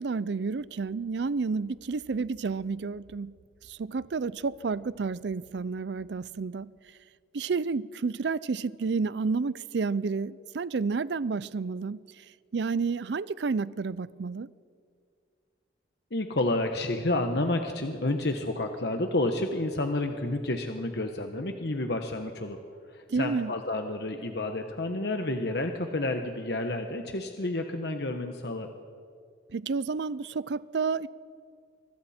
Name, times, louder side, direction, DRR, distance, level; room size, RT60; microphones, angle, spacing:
voice 1, 0.0-3.4 3.7-6.7 7.3-12.0 12.5-14.5 23.1-23.5 29.5-31.1, right 4 dB, 75° right, 0.5 m, -30 dB
voice 2, 16.1-22.6 22.9-28.7, left 2 dB, 65° left, 1.2 m, -30 dB
25.0 x 24.0 x 4.4 m
head